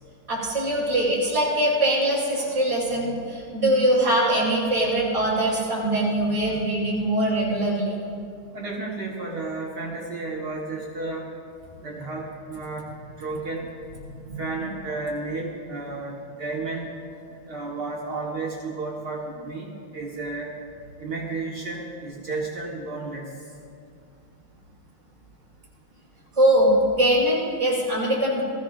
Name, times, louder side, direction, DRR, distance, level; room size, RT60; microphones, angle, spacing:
voice 1, 0.3-7.9 14.2-14.4 26.4-28.4, right 1 dB, 15° right, -6 dB, 4.2 m, -22 dB
voice 2, 8.5-11.3 11.8-12.9 13.2-13.7 14.4-16.9 17.5-20.5 21.0-23.3, right 3 dB, 55° right, -3 dB, 1.8 m, -32 dB
22.0 x 14.5 x 2.5 m, 2.3 s
omnidirectional pair, 2.3 m